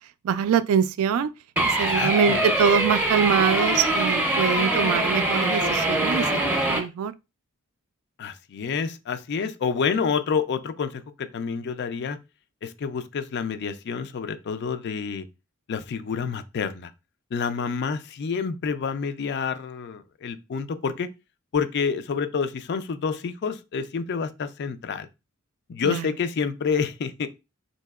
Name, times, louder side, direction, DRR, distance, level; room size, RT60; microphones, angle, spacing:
voice 1, 0.2-1.3 1.6-6.3 6.7-7.1 25.8-26.1, right 7 dB, 70° right, 0.3 m, -23 dB
sound 1, 1.6-6.8, right 1 dB, 10° right, 0.6 m, -23 dB
voice 2, 1.9-2.4 8.2-12.2 12.6-15.3 15.7-16.9 17.3-21.1 21.5-25.1 25.7-27.3, left 6 dB, 50° left, 0.4 m, -28 dB
4.0 x 2.8 x 2.3 m
head